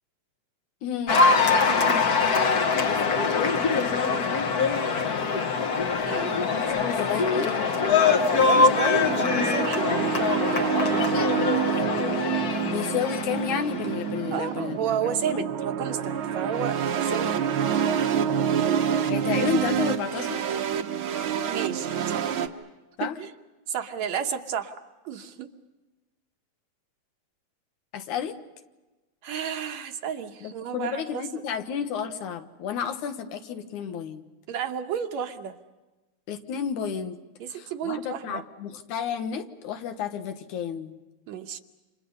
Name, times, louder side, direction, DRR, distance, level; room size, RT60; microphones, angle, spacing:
voice 1, 0.8-1.2 6.6-7.5 12.6-14.8 15.3-15.5 19.1-20.6 23.0-23.2 27.9-28.4 30.4-34.2 36.3-37.2 37.5-41.0, left 8 dB, 85° left, 7 dB, 2.8 m, -31 dB
Cheering / Applause, 1.1-14.5, left 4 dB, 45° left, 1.3 m, -23 dB
voice 2, 1.5-2.0 6.1-6.4 8.3-9.1 9.4-10.7 14.3-17.5 21.5-22.3 23.0-23.3 23.7-24.7 25.0-25.5 29.2-31.4 34.5-35.6 37.4-38.4 41.3-41.6, right 8 dB, 70° right, 5 dB, 2.4 m, -32 dB
sound 1, 8.9-22.5, right 8 dB, 55° right, 1.6 m, -27 dB
30.0 x 27.0 x 5.5 m, 1.1 s
omnidirectional pair, 3.4 m